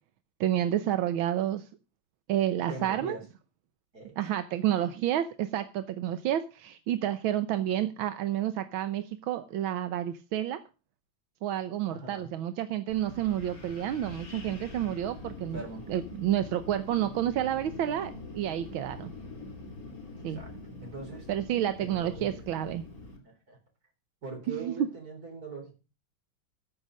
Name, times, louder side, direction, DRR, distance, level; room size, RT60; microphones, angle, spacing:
voice 1, 0.4-1.7 2.3-3.2 4.2-10.6 11.4-15.6 15.9-19.1 20.2-20.4 21.3-22.8 24.5-24.9, right 11 dB, 85° right, 11 dB, 1.6 m, -30 dB
voice 2, 2.7-3.2 3.9-4.3 11.9-12.3 15.5-15.9 20.3-20.6 20.8-21.3 21.8-22.5 23.2-23.6 24.2-25.7, right 4 dB, 50° right, 4 dB, 4.4 m, -41 dB
Wind, 12.9-23.2, left 2 dB, 45° left, 3.9 m, -44 dB
13.5 x 7.1 x 6.3 m, 0.31 s
omnidirectional pair, 2.1 m